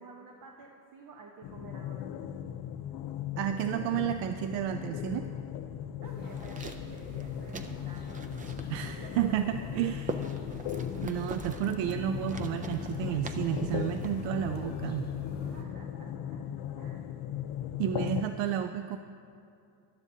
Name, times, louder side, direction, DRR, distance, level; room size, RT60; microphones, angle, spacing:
voice 1, 0.0-2.3 6.0-8.1 9.0-9.9 10.2-10.9 15.4-16.5 16.8-17.1, right 4 dB, 45° right, 1 dB, 1.1 m, -51 dB
sound 1, 1.4-18.2, left 10 dB, 50° left, 0.6 m, -38 dB
voice 2, 3.4-5.3 8.7-10.2 11.0-15.1 17.8-19.0, right 11 dB, 65° right, 9 dB, 0.6 m, -31 dB
sound 2, 6.0-15.6, left 2 dB, 20° left, 1.9 m, -46 dB
sound 3, 6.2-14.3, right 3 dB, 20° right, 0.3 m, -44 dB
17.0 x 12.0 x 2.8 m, 2.5 s
cardioid pair, 125°, 48 cm